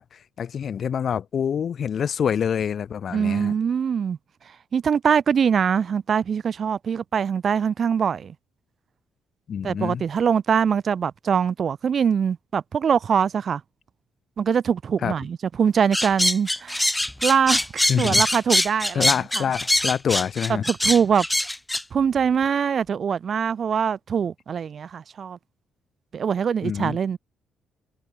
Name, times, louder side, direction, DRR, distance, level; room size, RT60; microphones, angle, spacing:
voice 1, 0.0-3.5 9.5-10.0 15.0-15.1 17.9-18.2 18.9-20.7 26.6-27.0, left 8 dB, 55° left, 0.6 m, -26 dB
voice 2, 3.1-4.2 4.7-8.3 9.6-13.6 14.4-16.9 17.2-17.7 18.0-19.1 19.3-19.4 20.5-21.3 21.9-25.4 26.1-27.2, right 7 dB, 50° right, 0.4 m, -23 dB
sound 1, 15.9-21.8, left 1 dB, 10° left, 0.7 m, -23 dB
cardioid pair, 90°, 0 cm